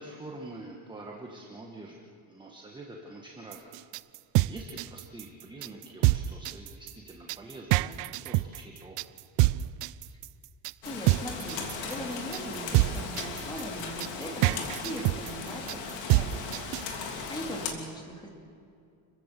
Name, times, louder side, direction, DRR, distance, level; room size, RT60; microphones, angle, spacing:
voice 1, 0.0-2.0 2.3-3.7 4.5-9.0, right 2 dB, 10° right, -1 dB, 1.5 m, -45 dB
sound 1, 3.5-17.0, right 19 dB, 70° right, 0.5 m, -27 dB
Rain, 10.8-17.7, left 5 dB, 75° left, 3.1 m, -37 dB
voice 2, 10.8-18.3, equal, 10° left, 1 dB, 2.7 m, -40 dB
sound 2, 11.3-17.1, right 4 dB, 40° right, 6.8 m, -53 dB
29.0 x 15.0 x 7.6 m, 2.4 s
cardioid pair, 170°, 44 cm